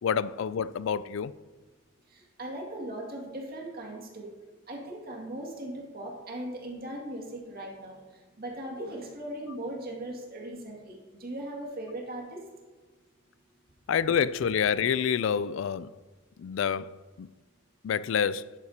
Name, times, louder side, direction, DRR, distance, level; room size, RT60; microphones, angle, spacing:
voice 1, 0.0-1.3 13.9-15.9 16.4-17.3 17.8-18.5, left 7 dB, 70° left, 0.3 m, -28 dB
voice 2, 2.1-4.3 4.7-8.0 8.4-12.4, right 1 dB, 45° right, 2.2 m, -38 dB
11.0 x 8.8 x 2.8 m
head